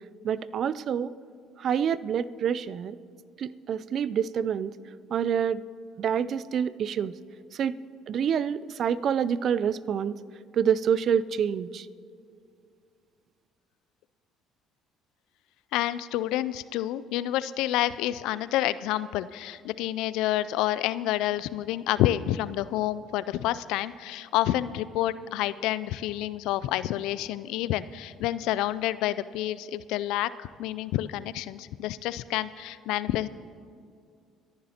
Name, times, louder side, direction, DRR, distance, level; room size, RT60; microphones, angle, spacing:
voice 1, 0.2-1.1 1.6-3.0 3.4-4.7 5.1-5.6 6.0-7.1 7.5-7.8 8.1-10.2 10.5-11.9, right 8 dB, 55° right, 17 dB, 0.4 m, -27 dB
voice 2, 15.7-33.3, left 14 dB, 75° left, 16 dB, 0.3 m, -29 dB
24.0 x 10.5 x 2.9 m, 2.3 s
hypercardioid pair, 60°, 0 cm